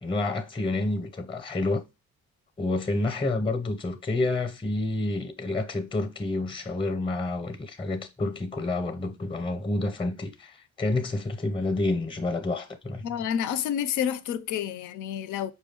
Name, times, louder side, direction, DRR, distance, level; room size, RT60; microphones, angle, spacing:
voice 1, 0.0-1.8 2.6-13.2, left 2 dB, 15° left, 0.7 m, -29 dB
voice 2, 13.0-15.5, left 9 dB, 80° left, 0.5 m, -29 dB
5.0 x 2.2 x 3.7 m
cardioid pair, 90°, 30 cm